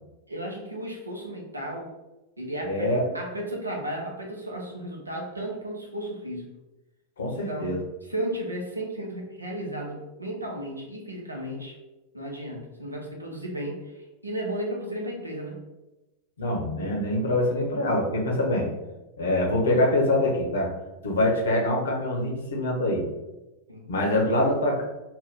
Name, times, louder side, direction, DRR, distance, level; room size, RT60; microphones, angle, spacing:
voice 1, 0.3-1.9 2.4-6.5 7.5-11.8 12.1-15.7 23.7-23.9, right 1 dB, 85° right, -1 dB, 0.6 m, -34 dB
voice 2, 2.6-3.0 7.2-7.8 16.4-18.7 19.2-20.7 21.0-23.0 23.9-24.8, left 1 dB, 65° left, -1 dB, 0.7 m, -24 dB
2.7 x 2.2 x 3.5 m, 1.0 s
figure-of-eight pair, 90°, 0 cm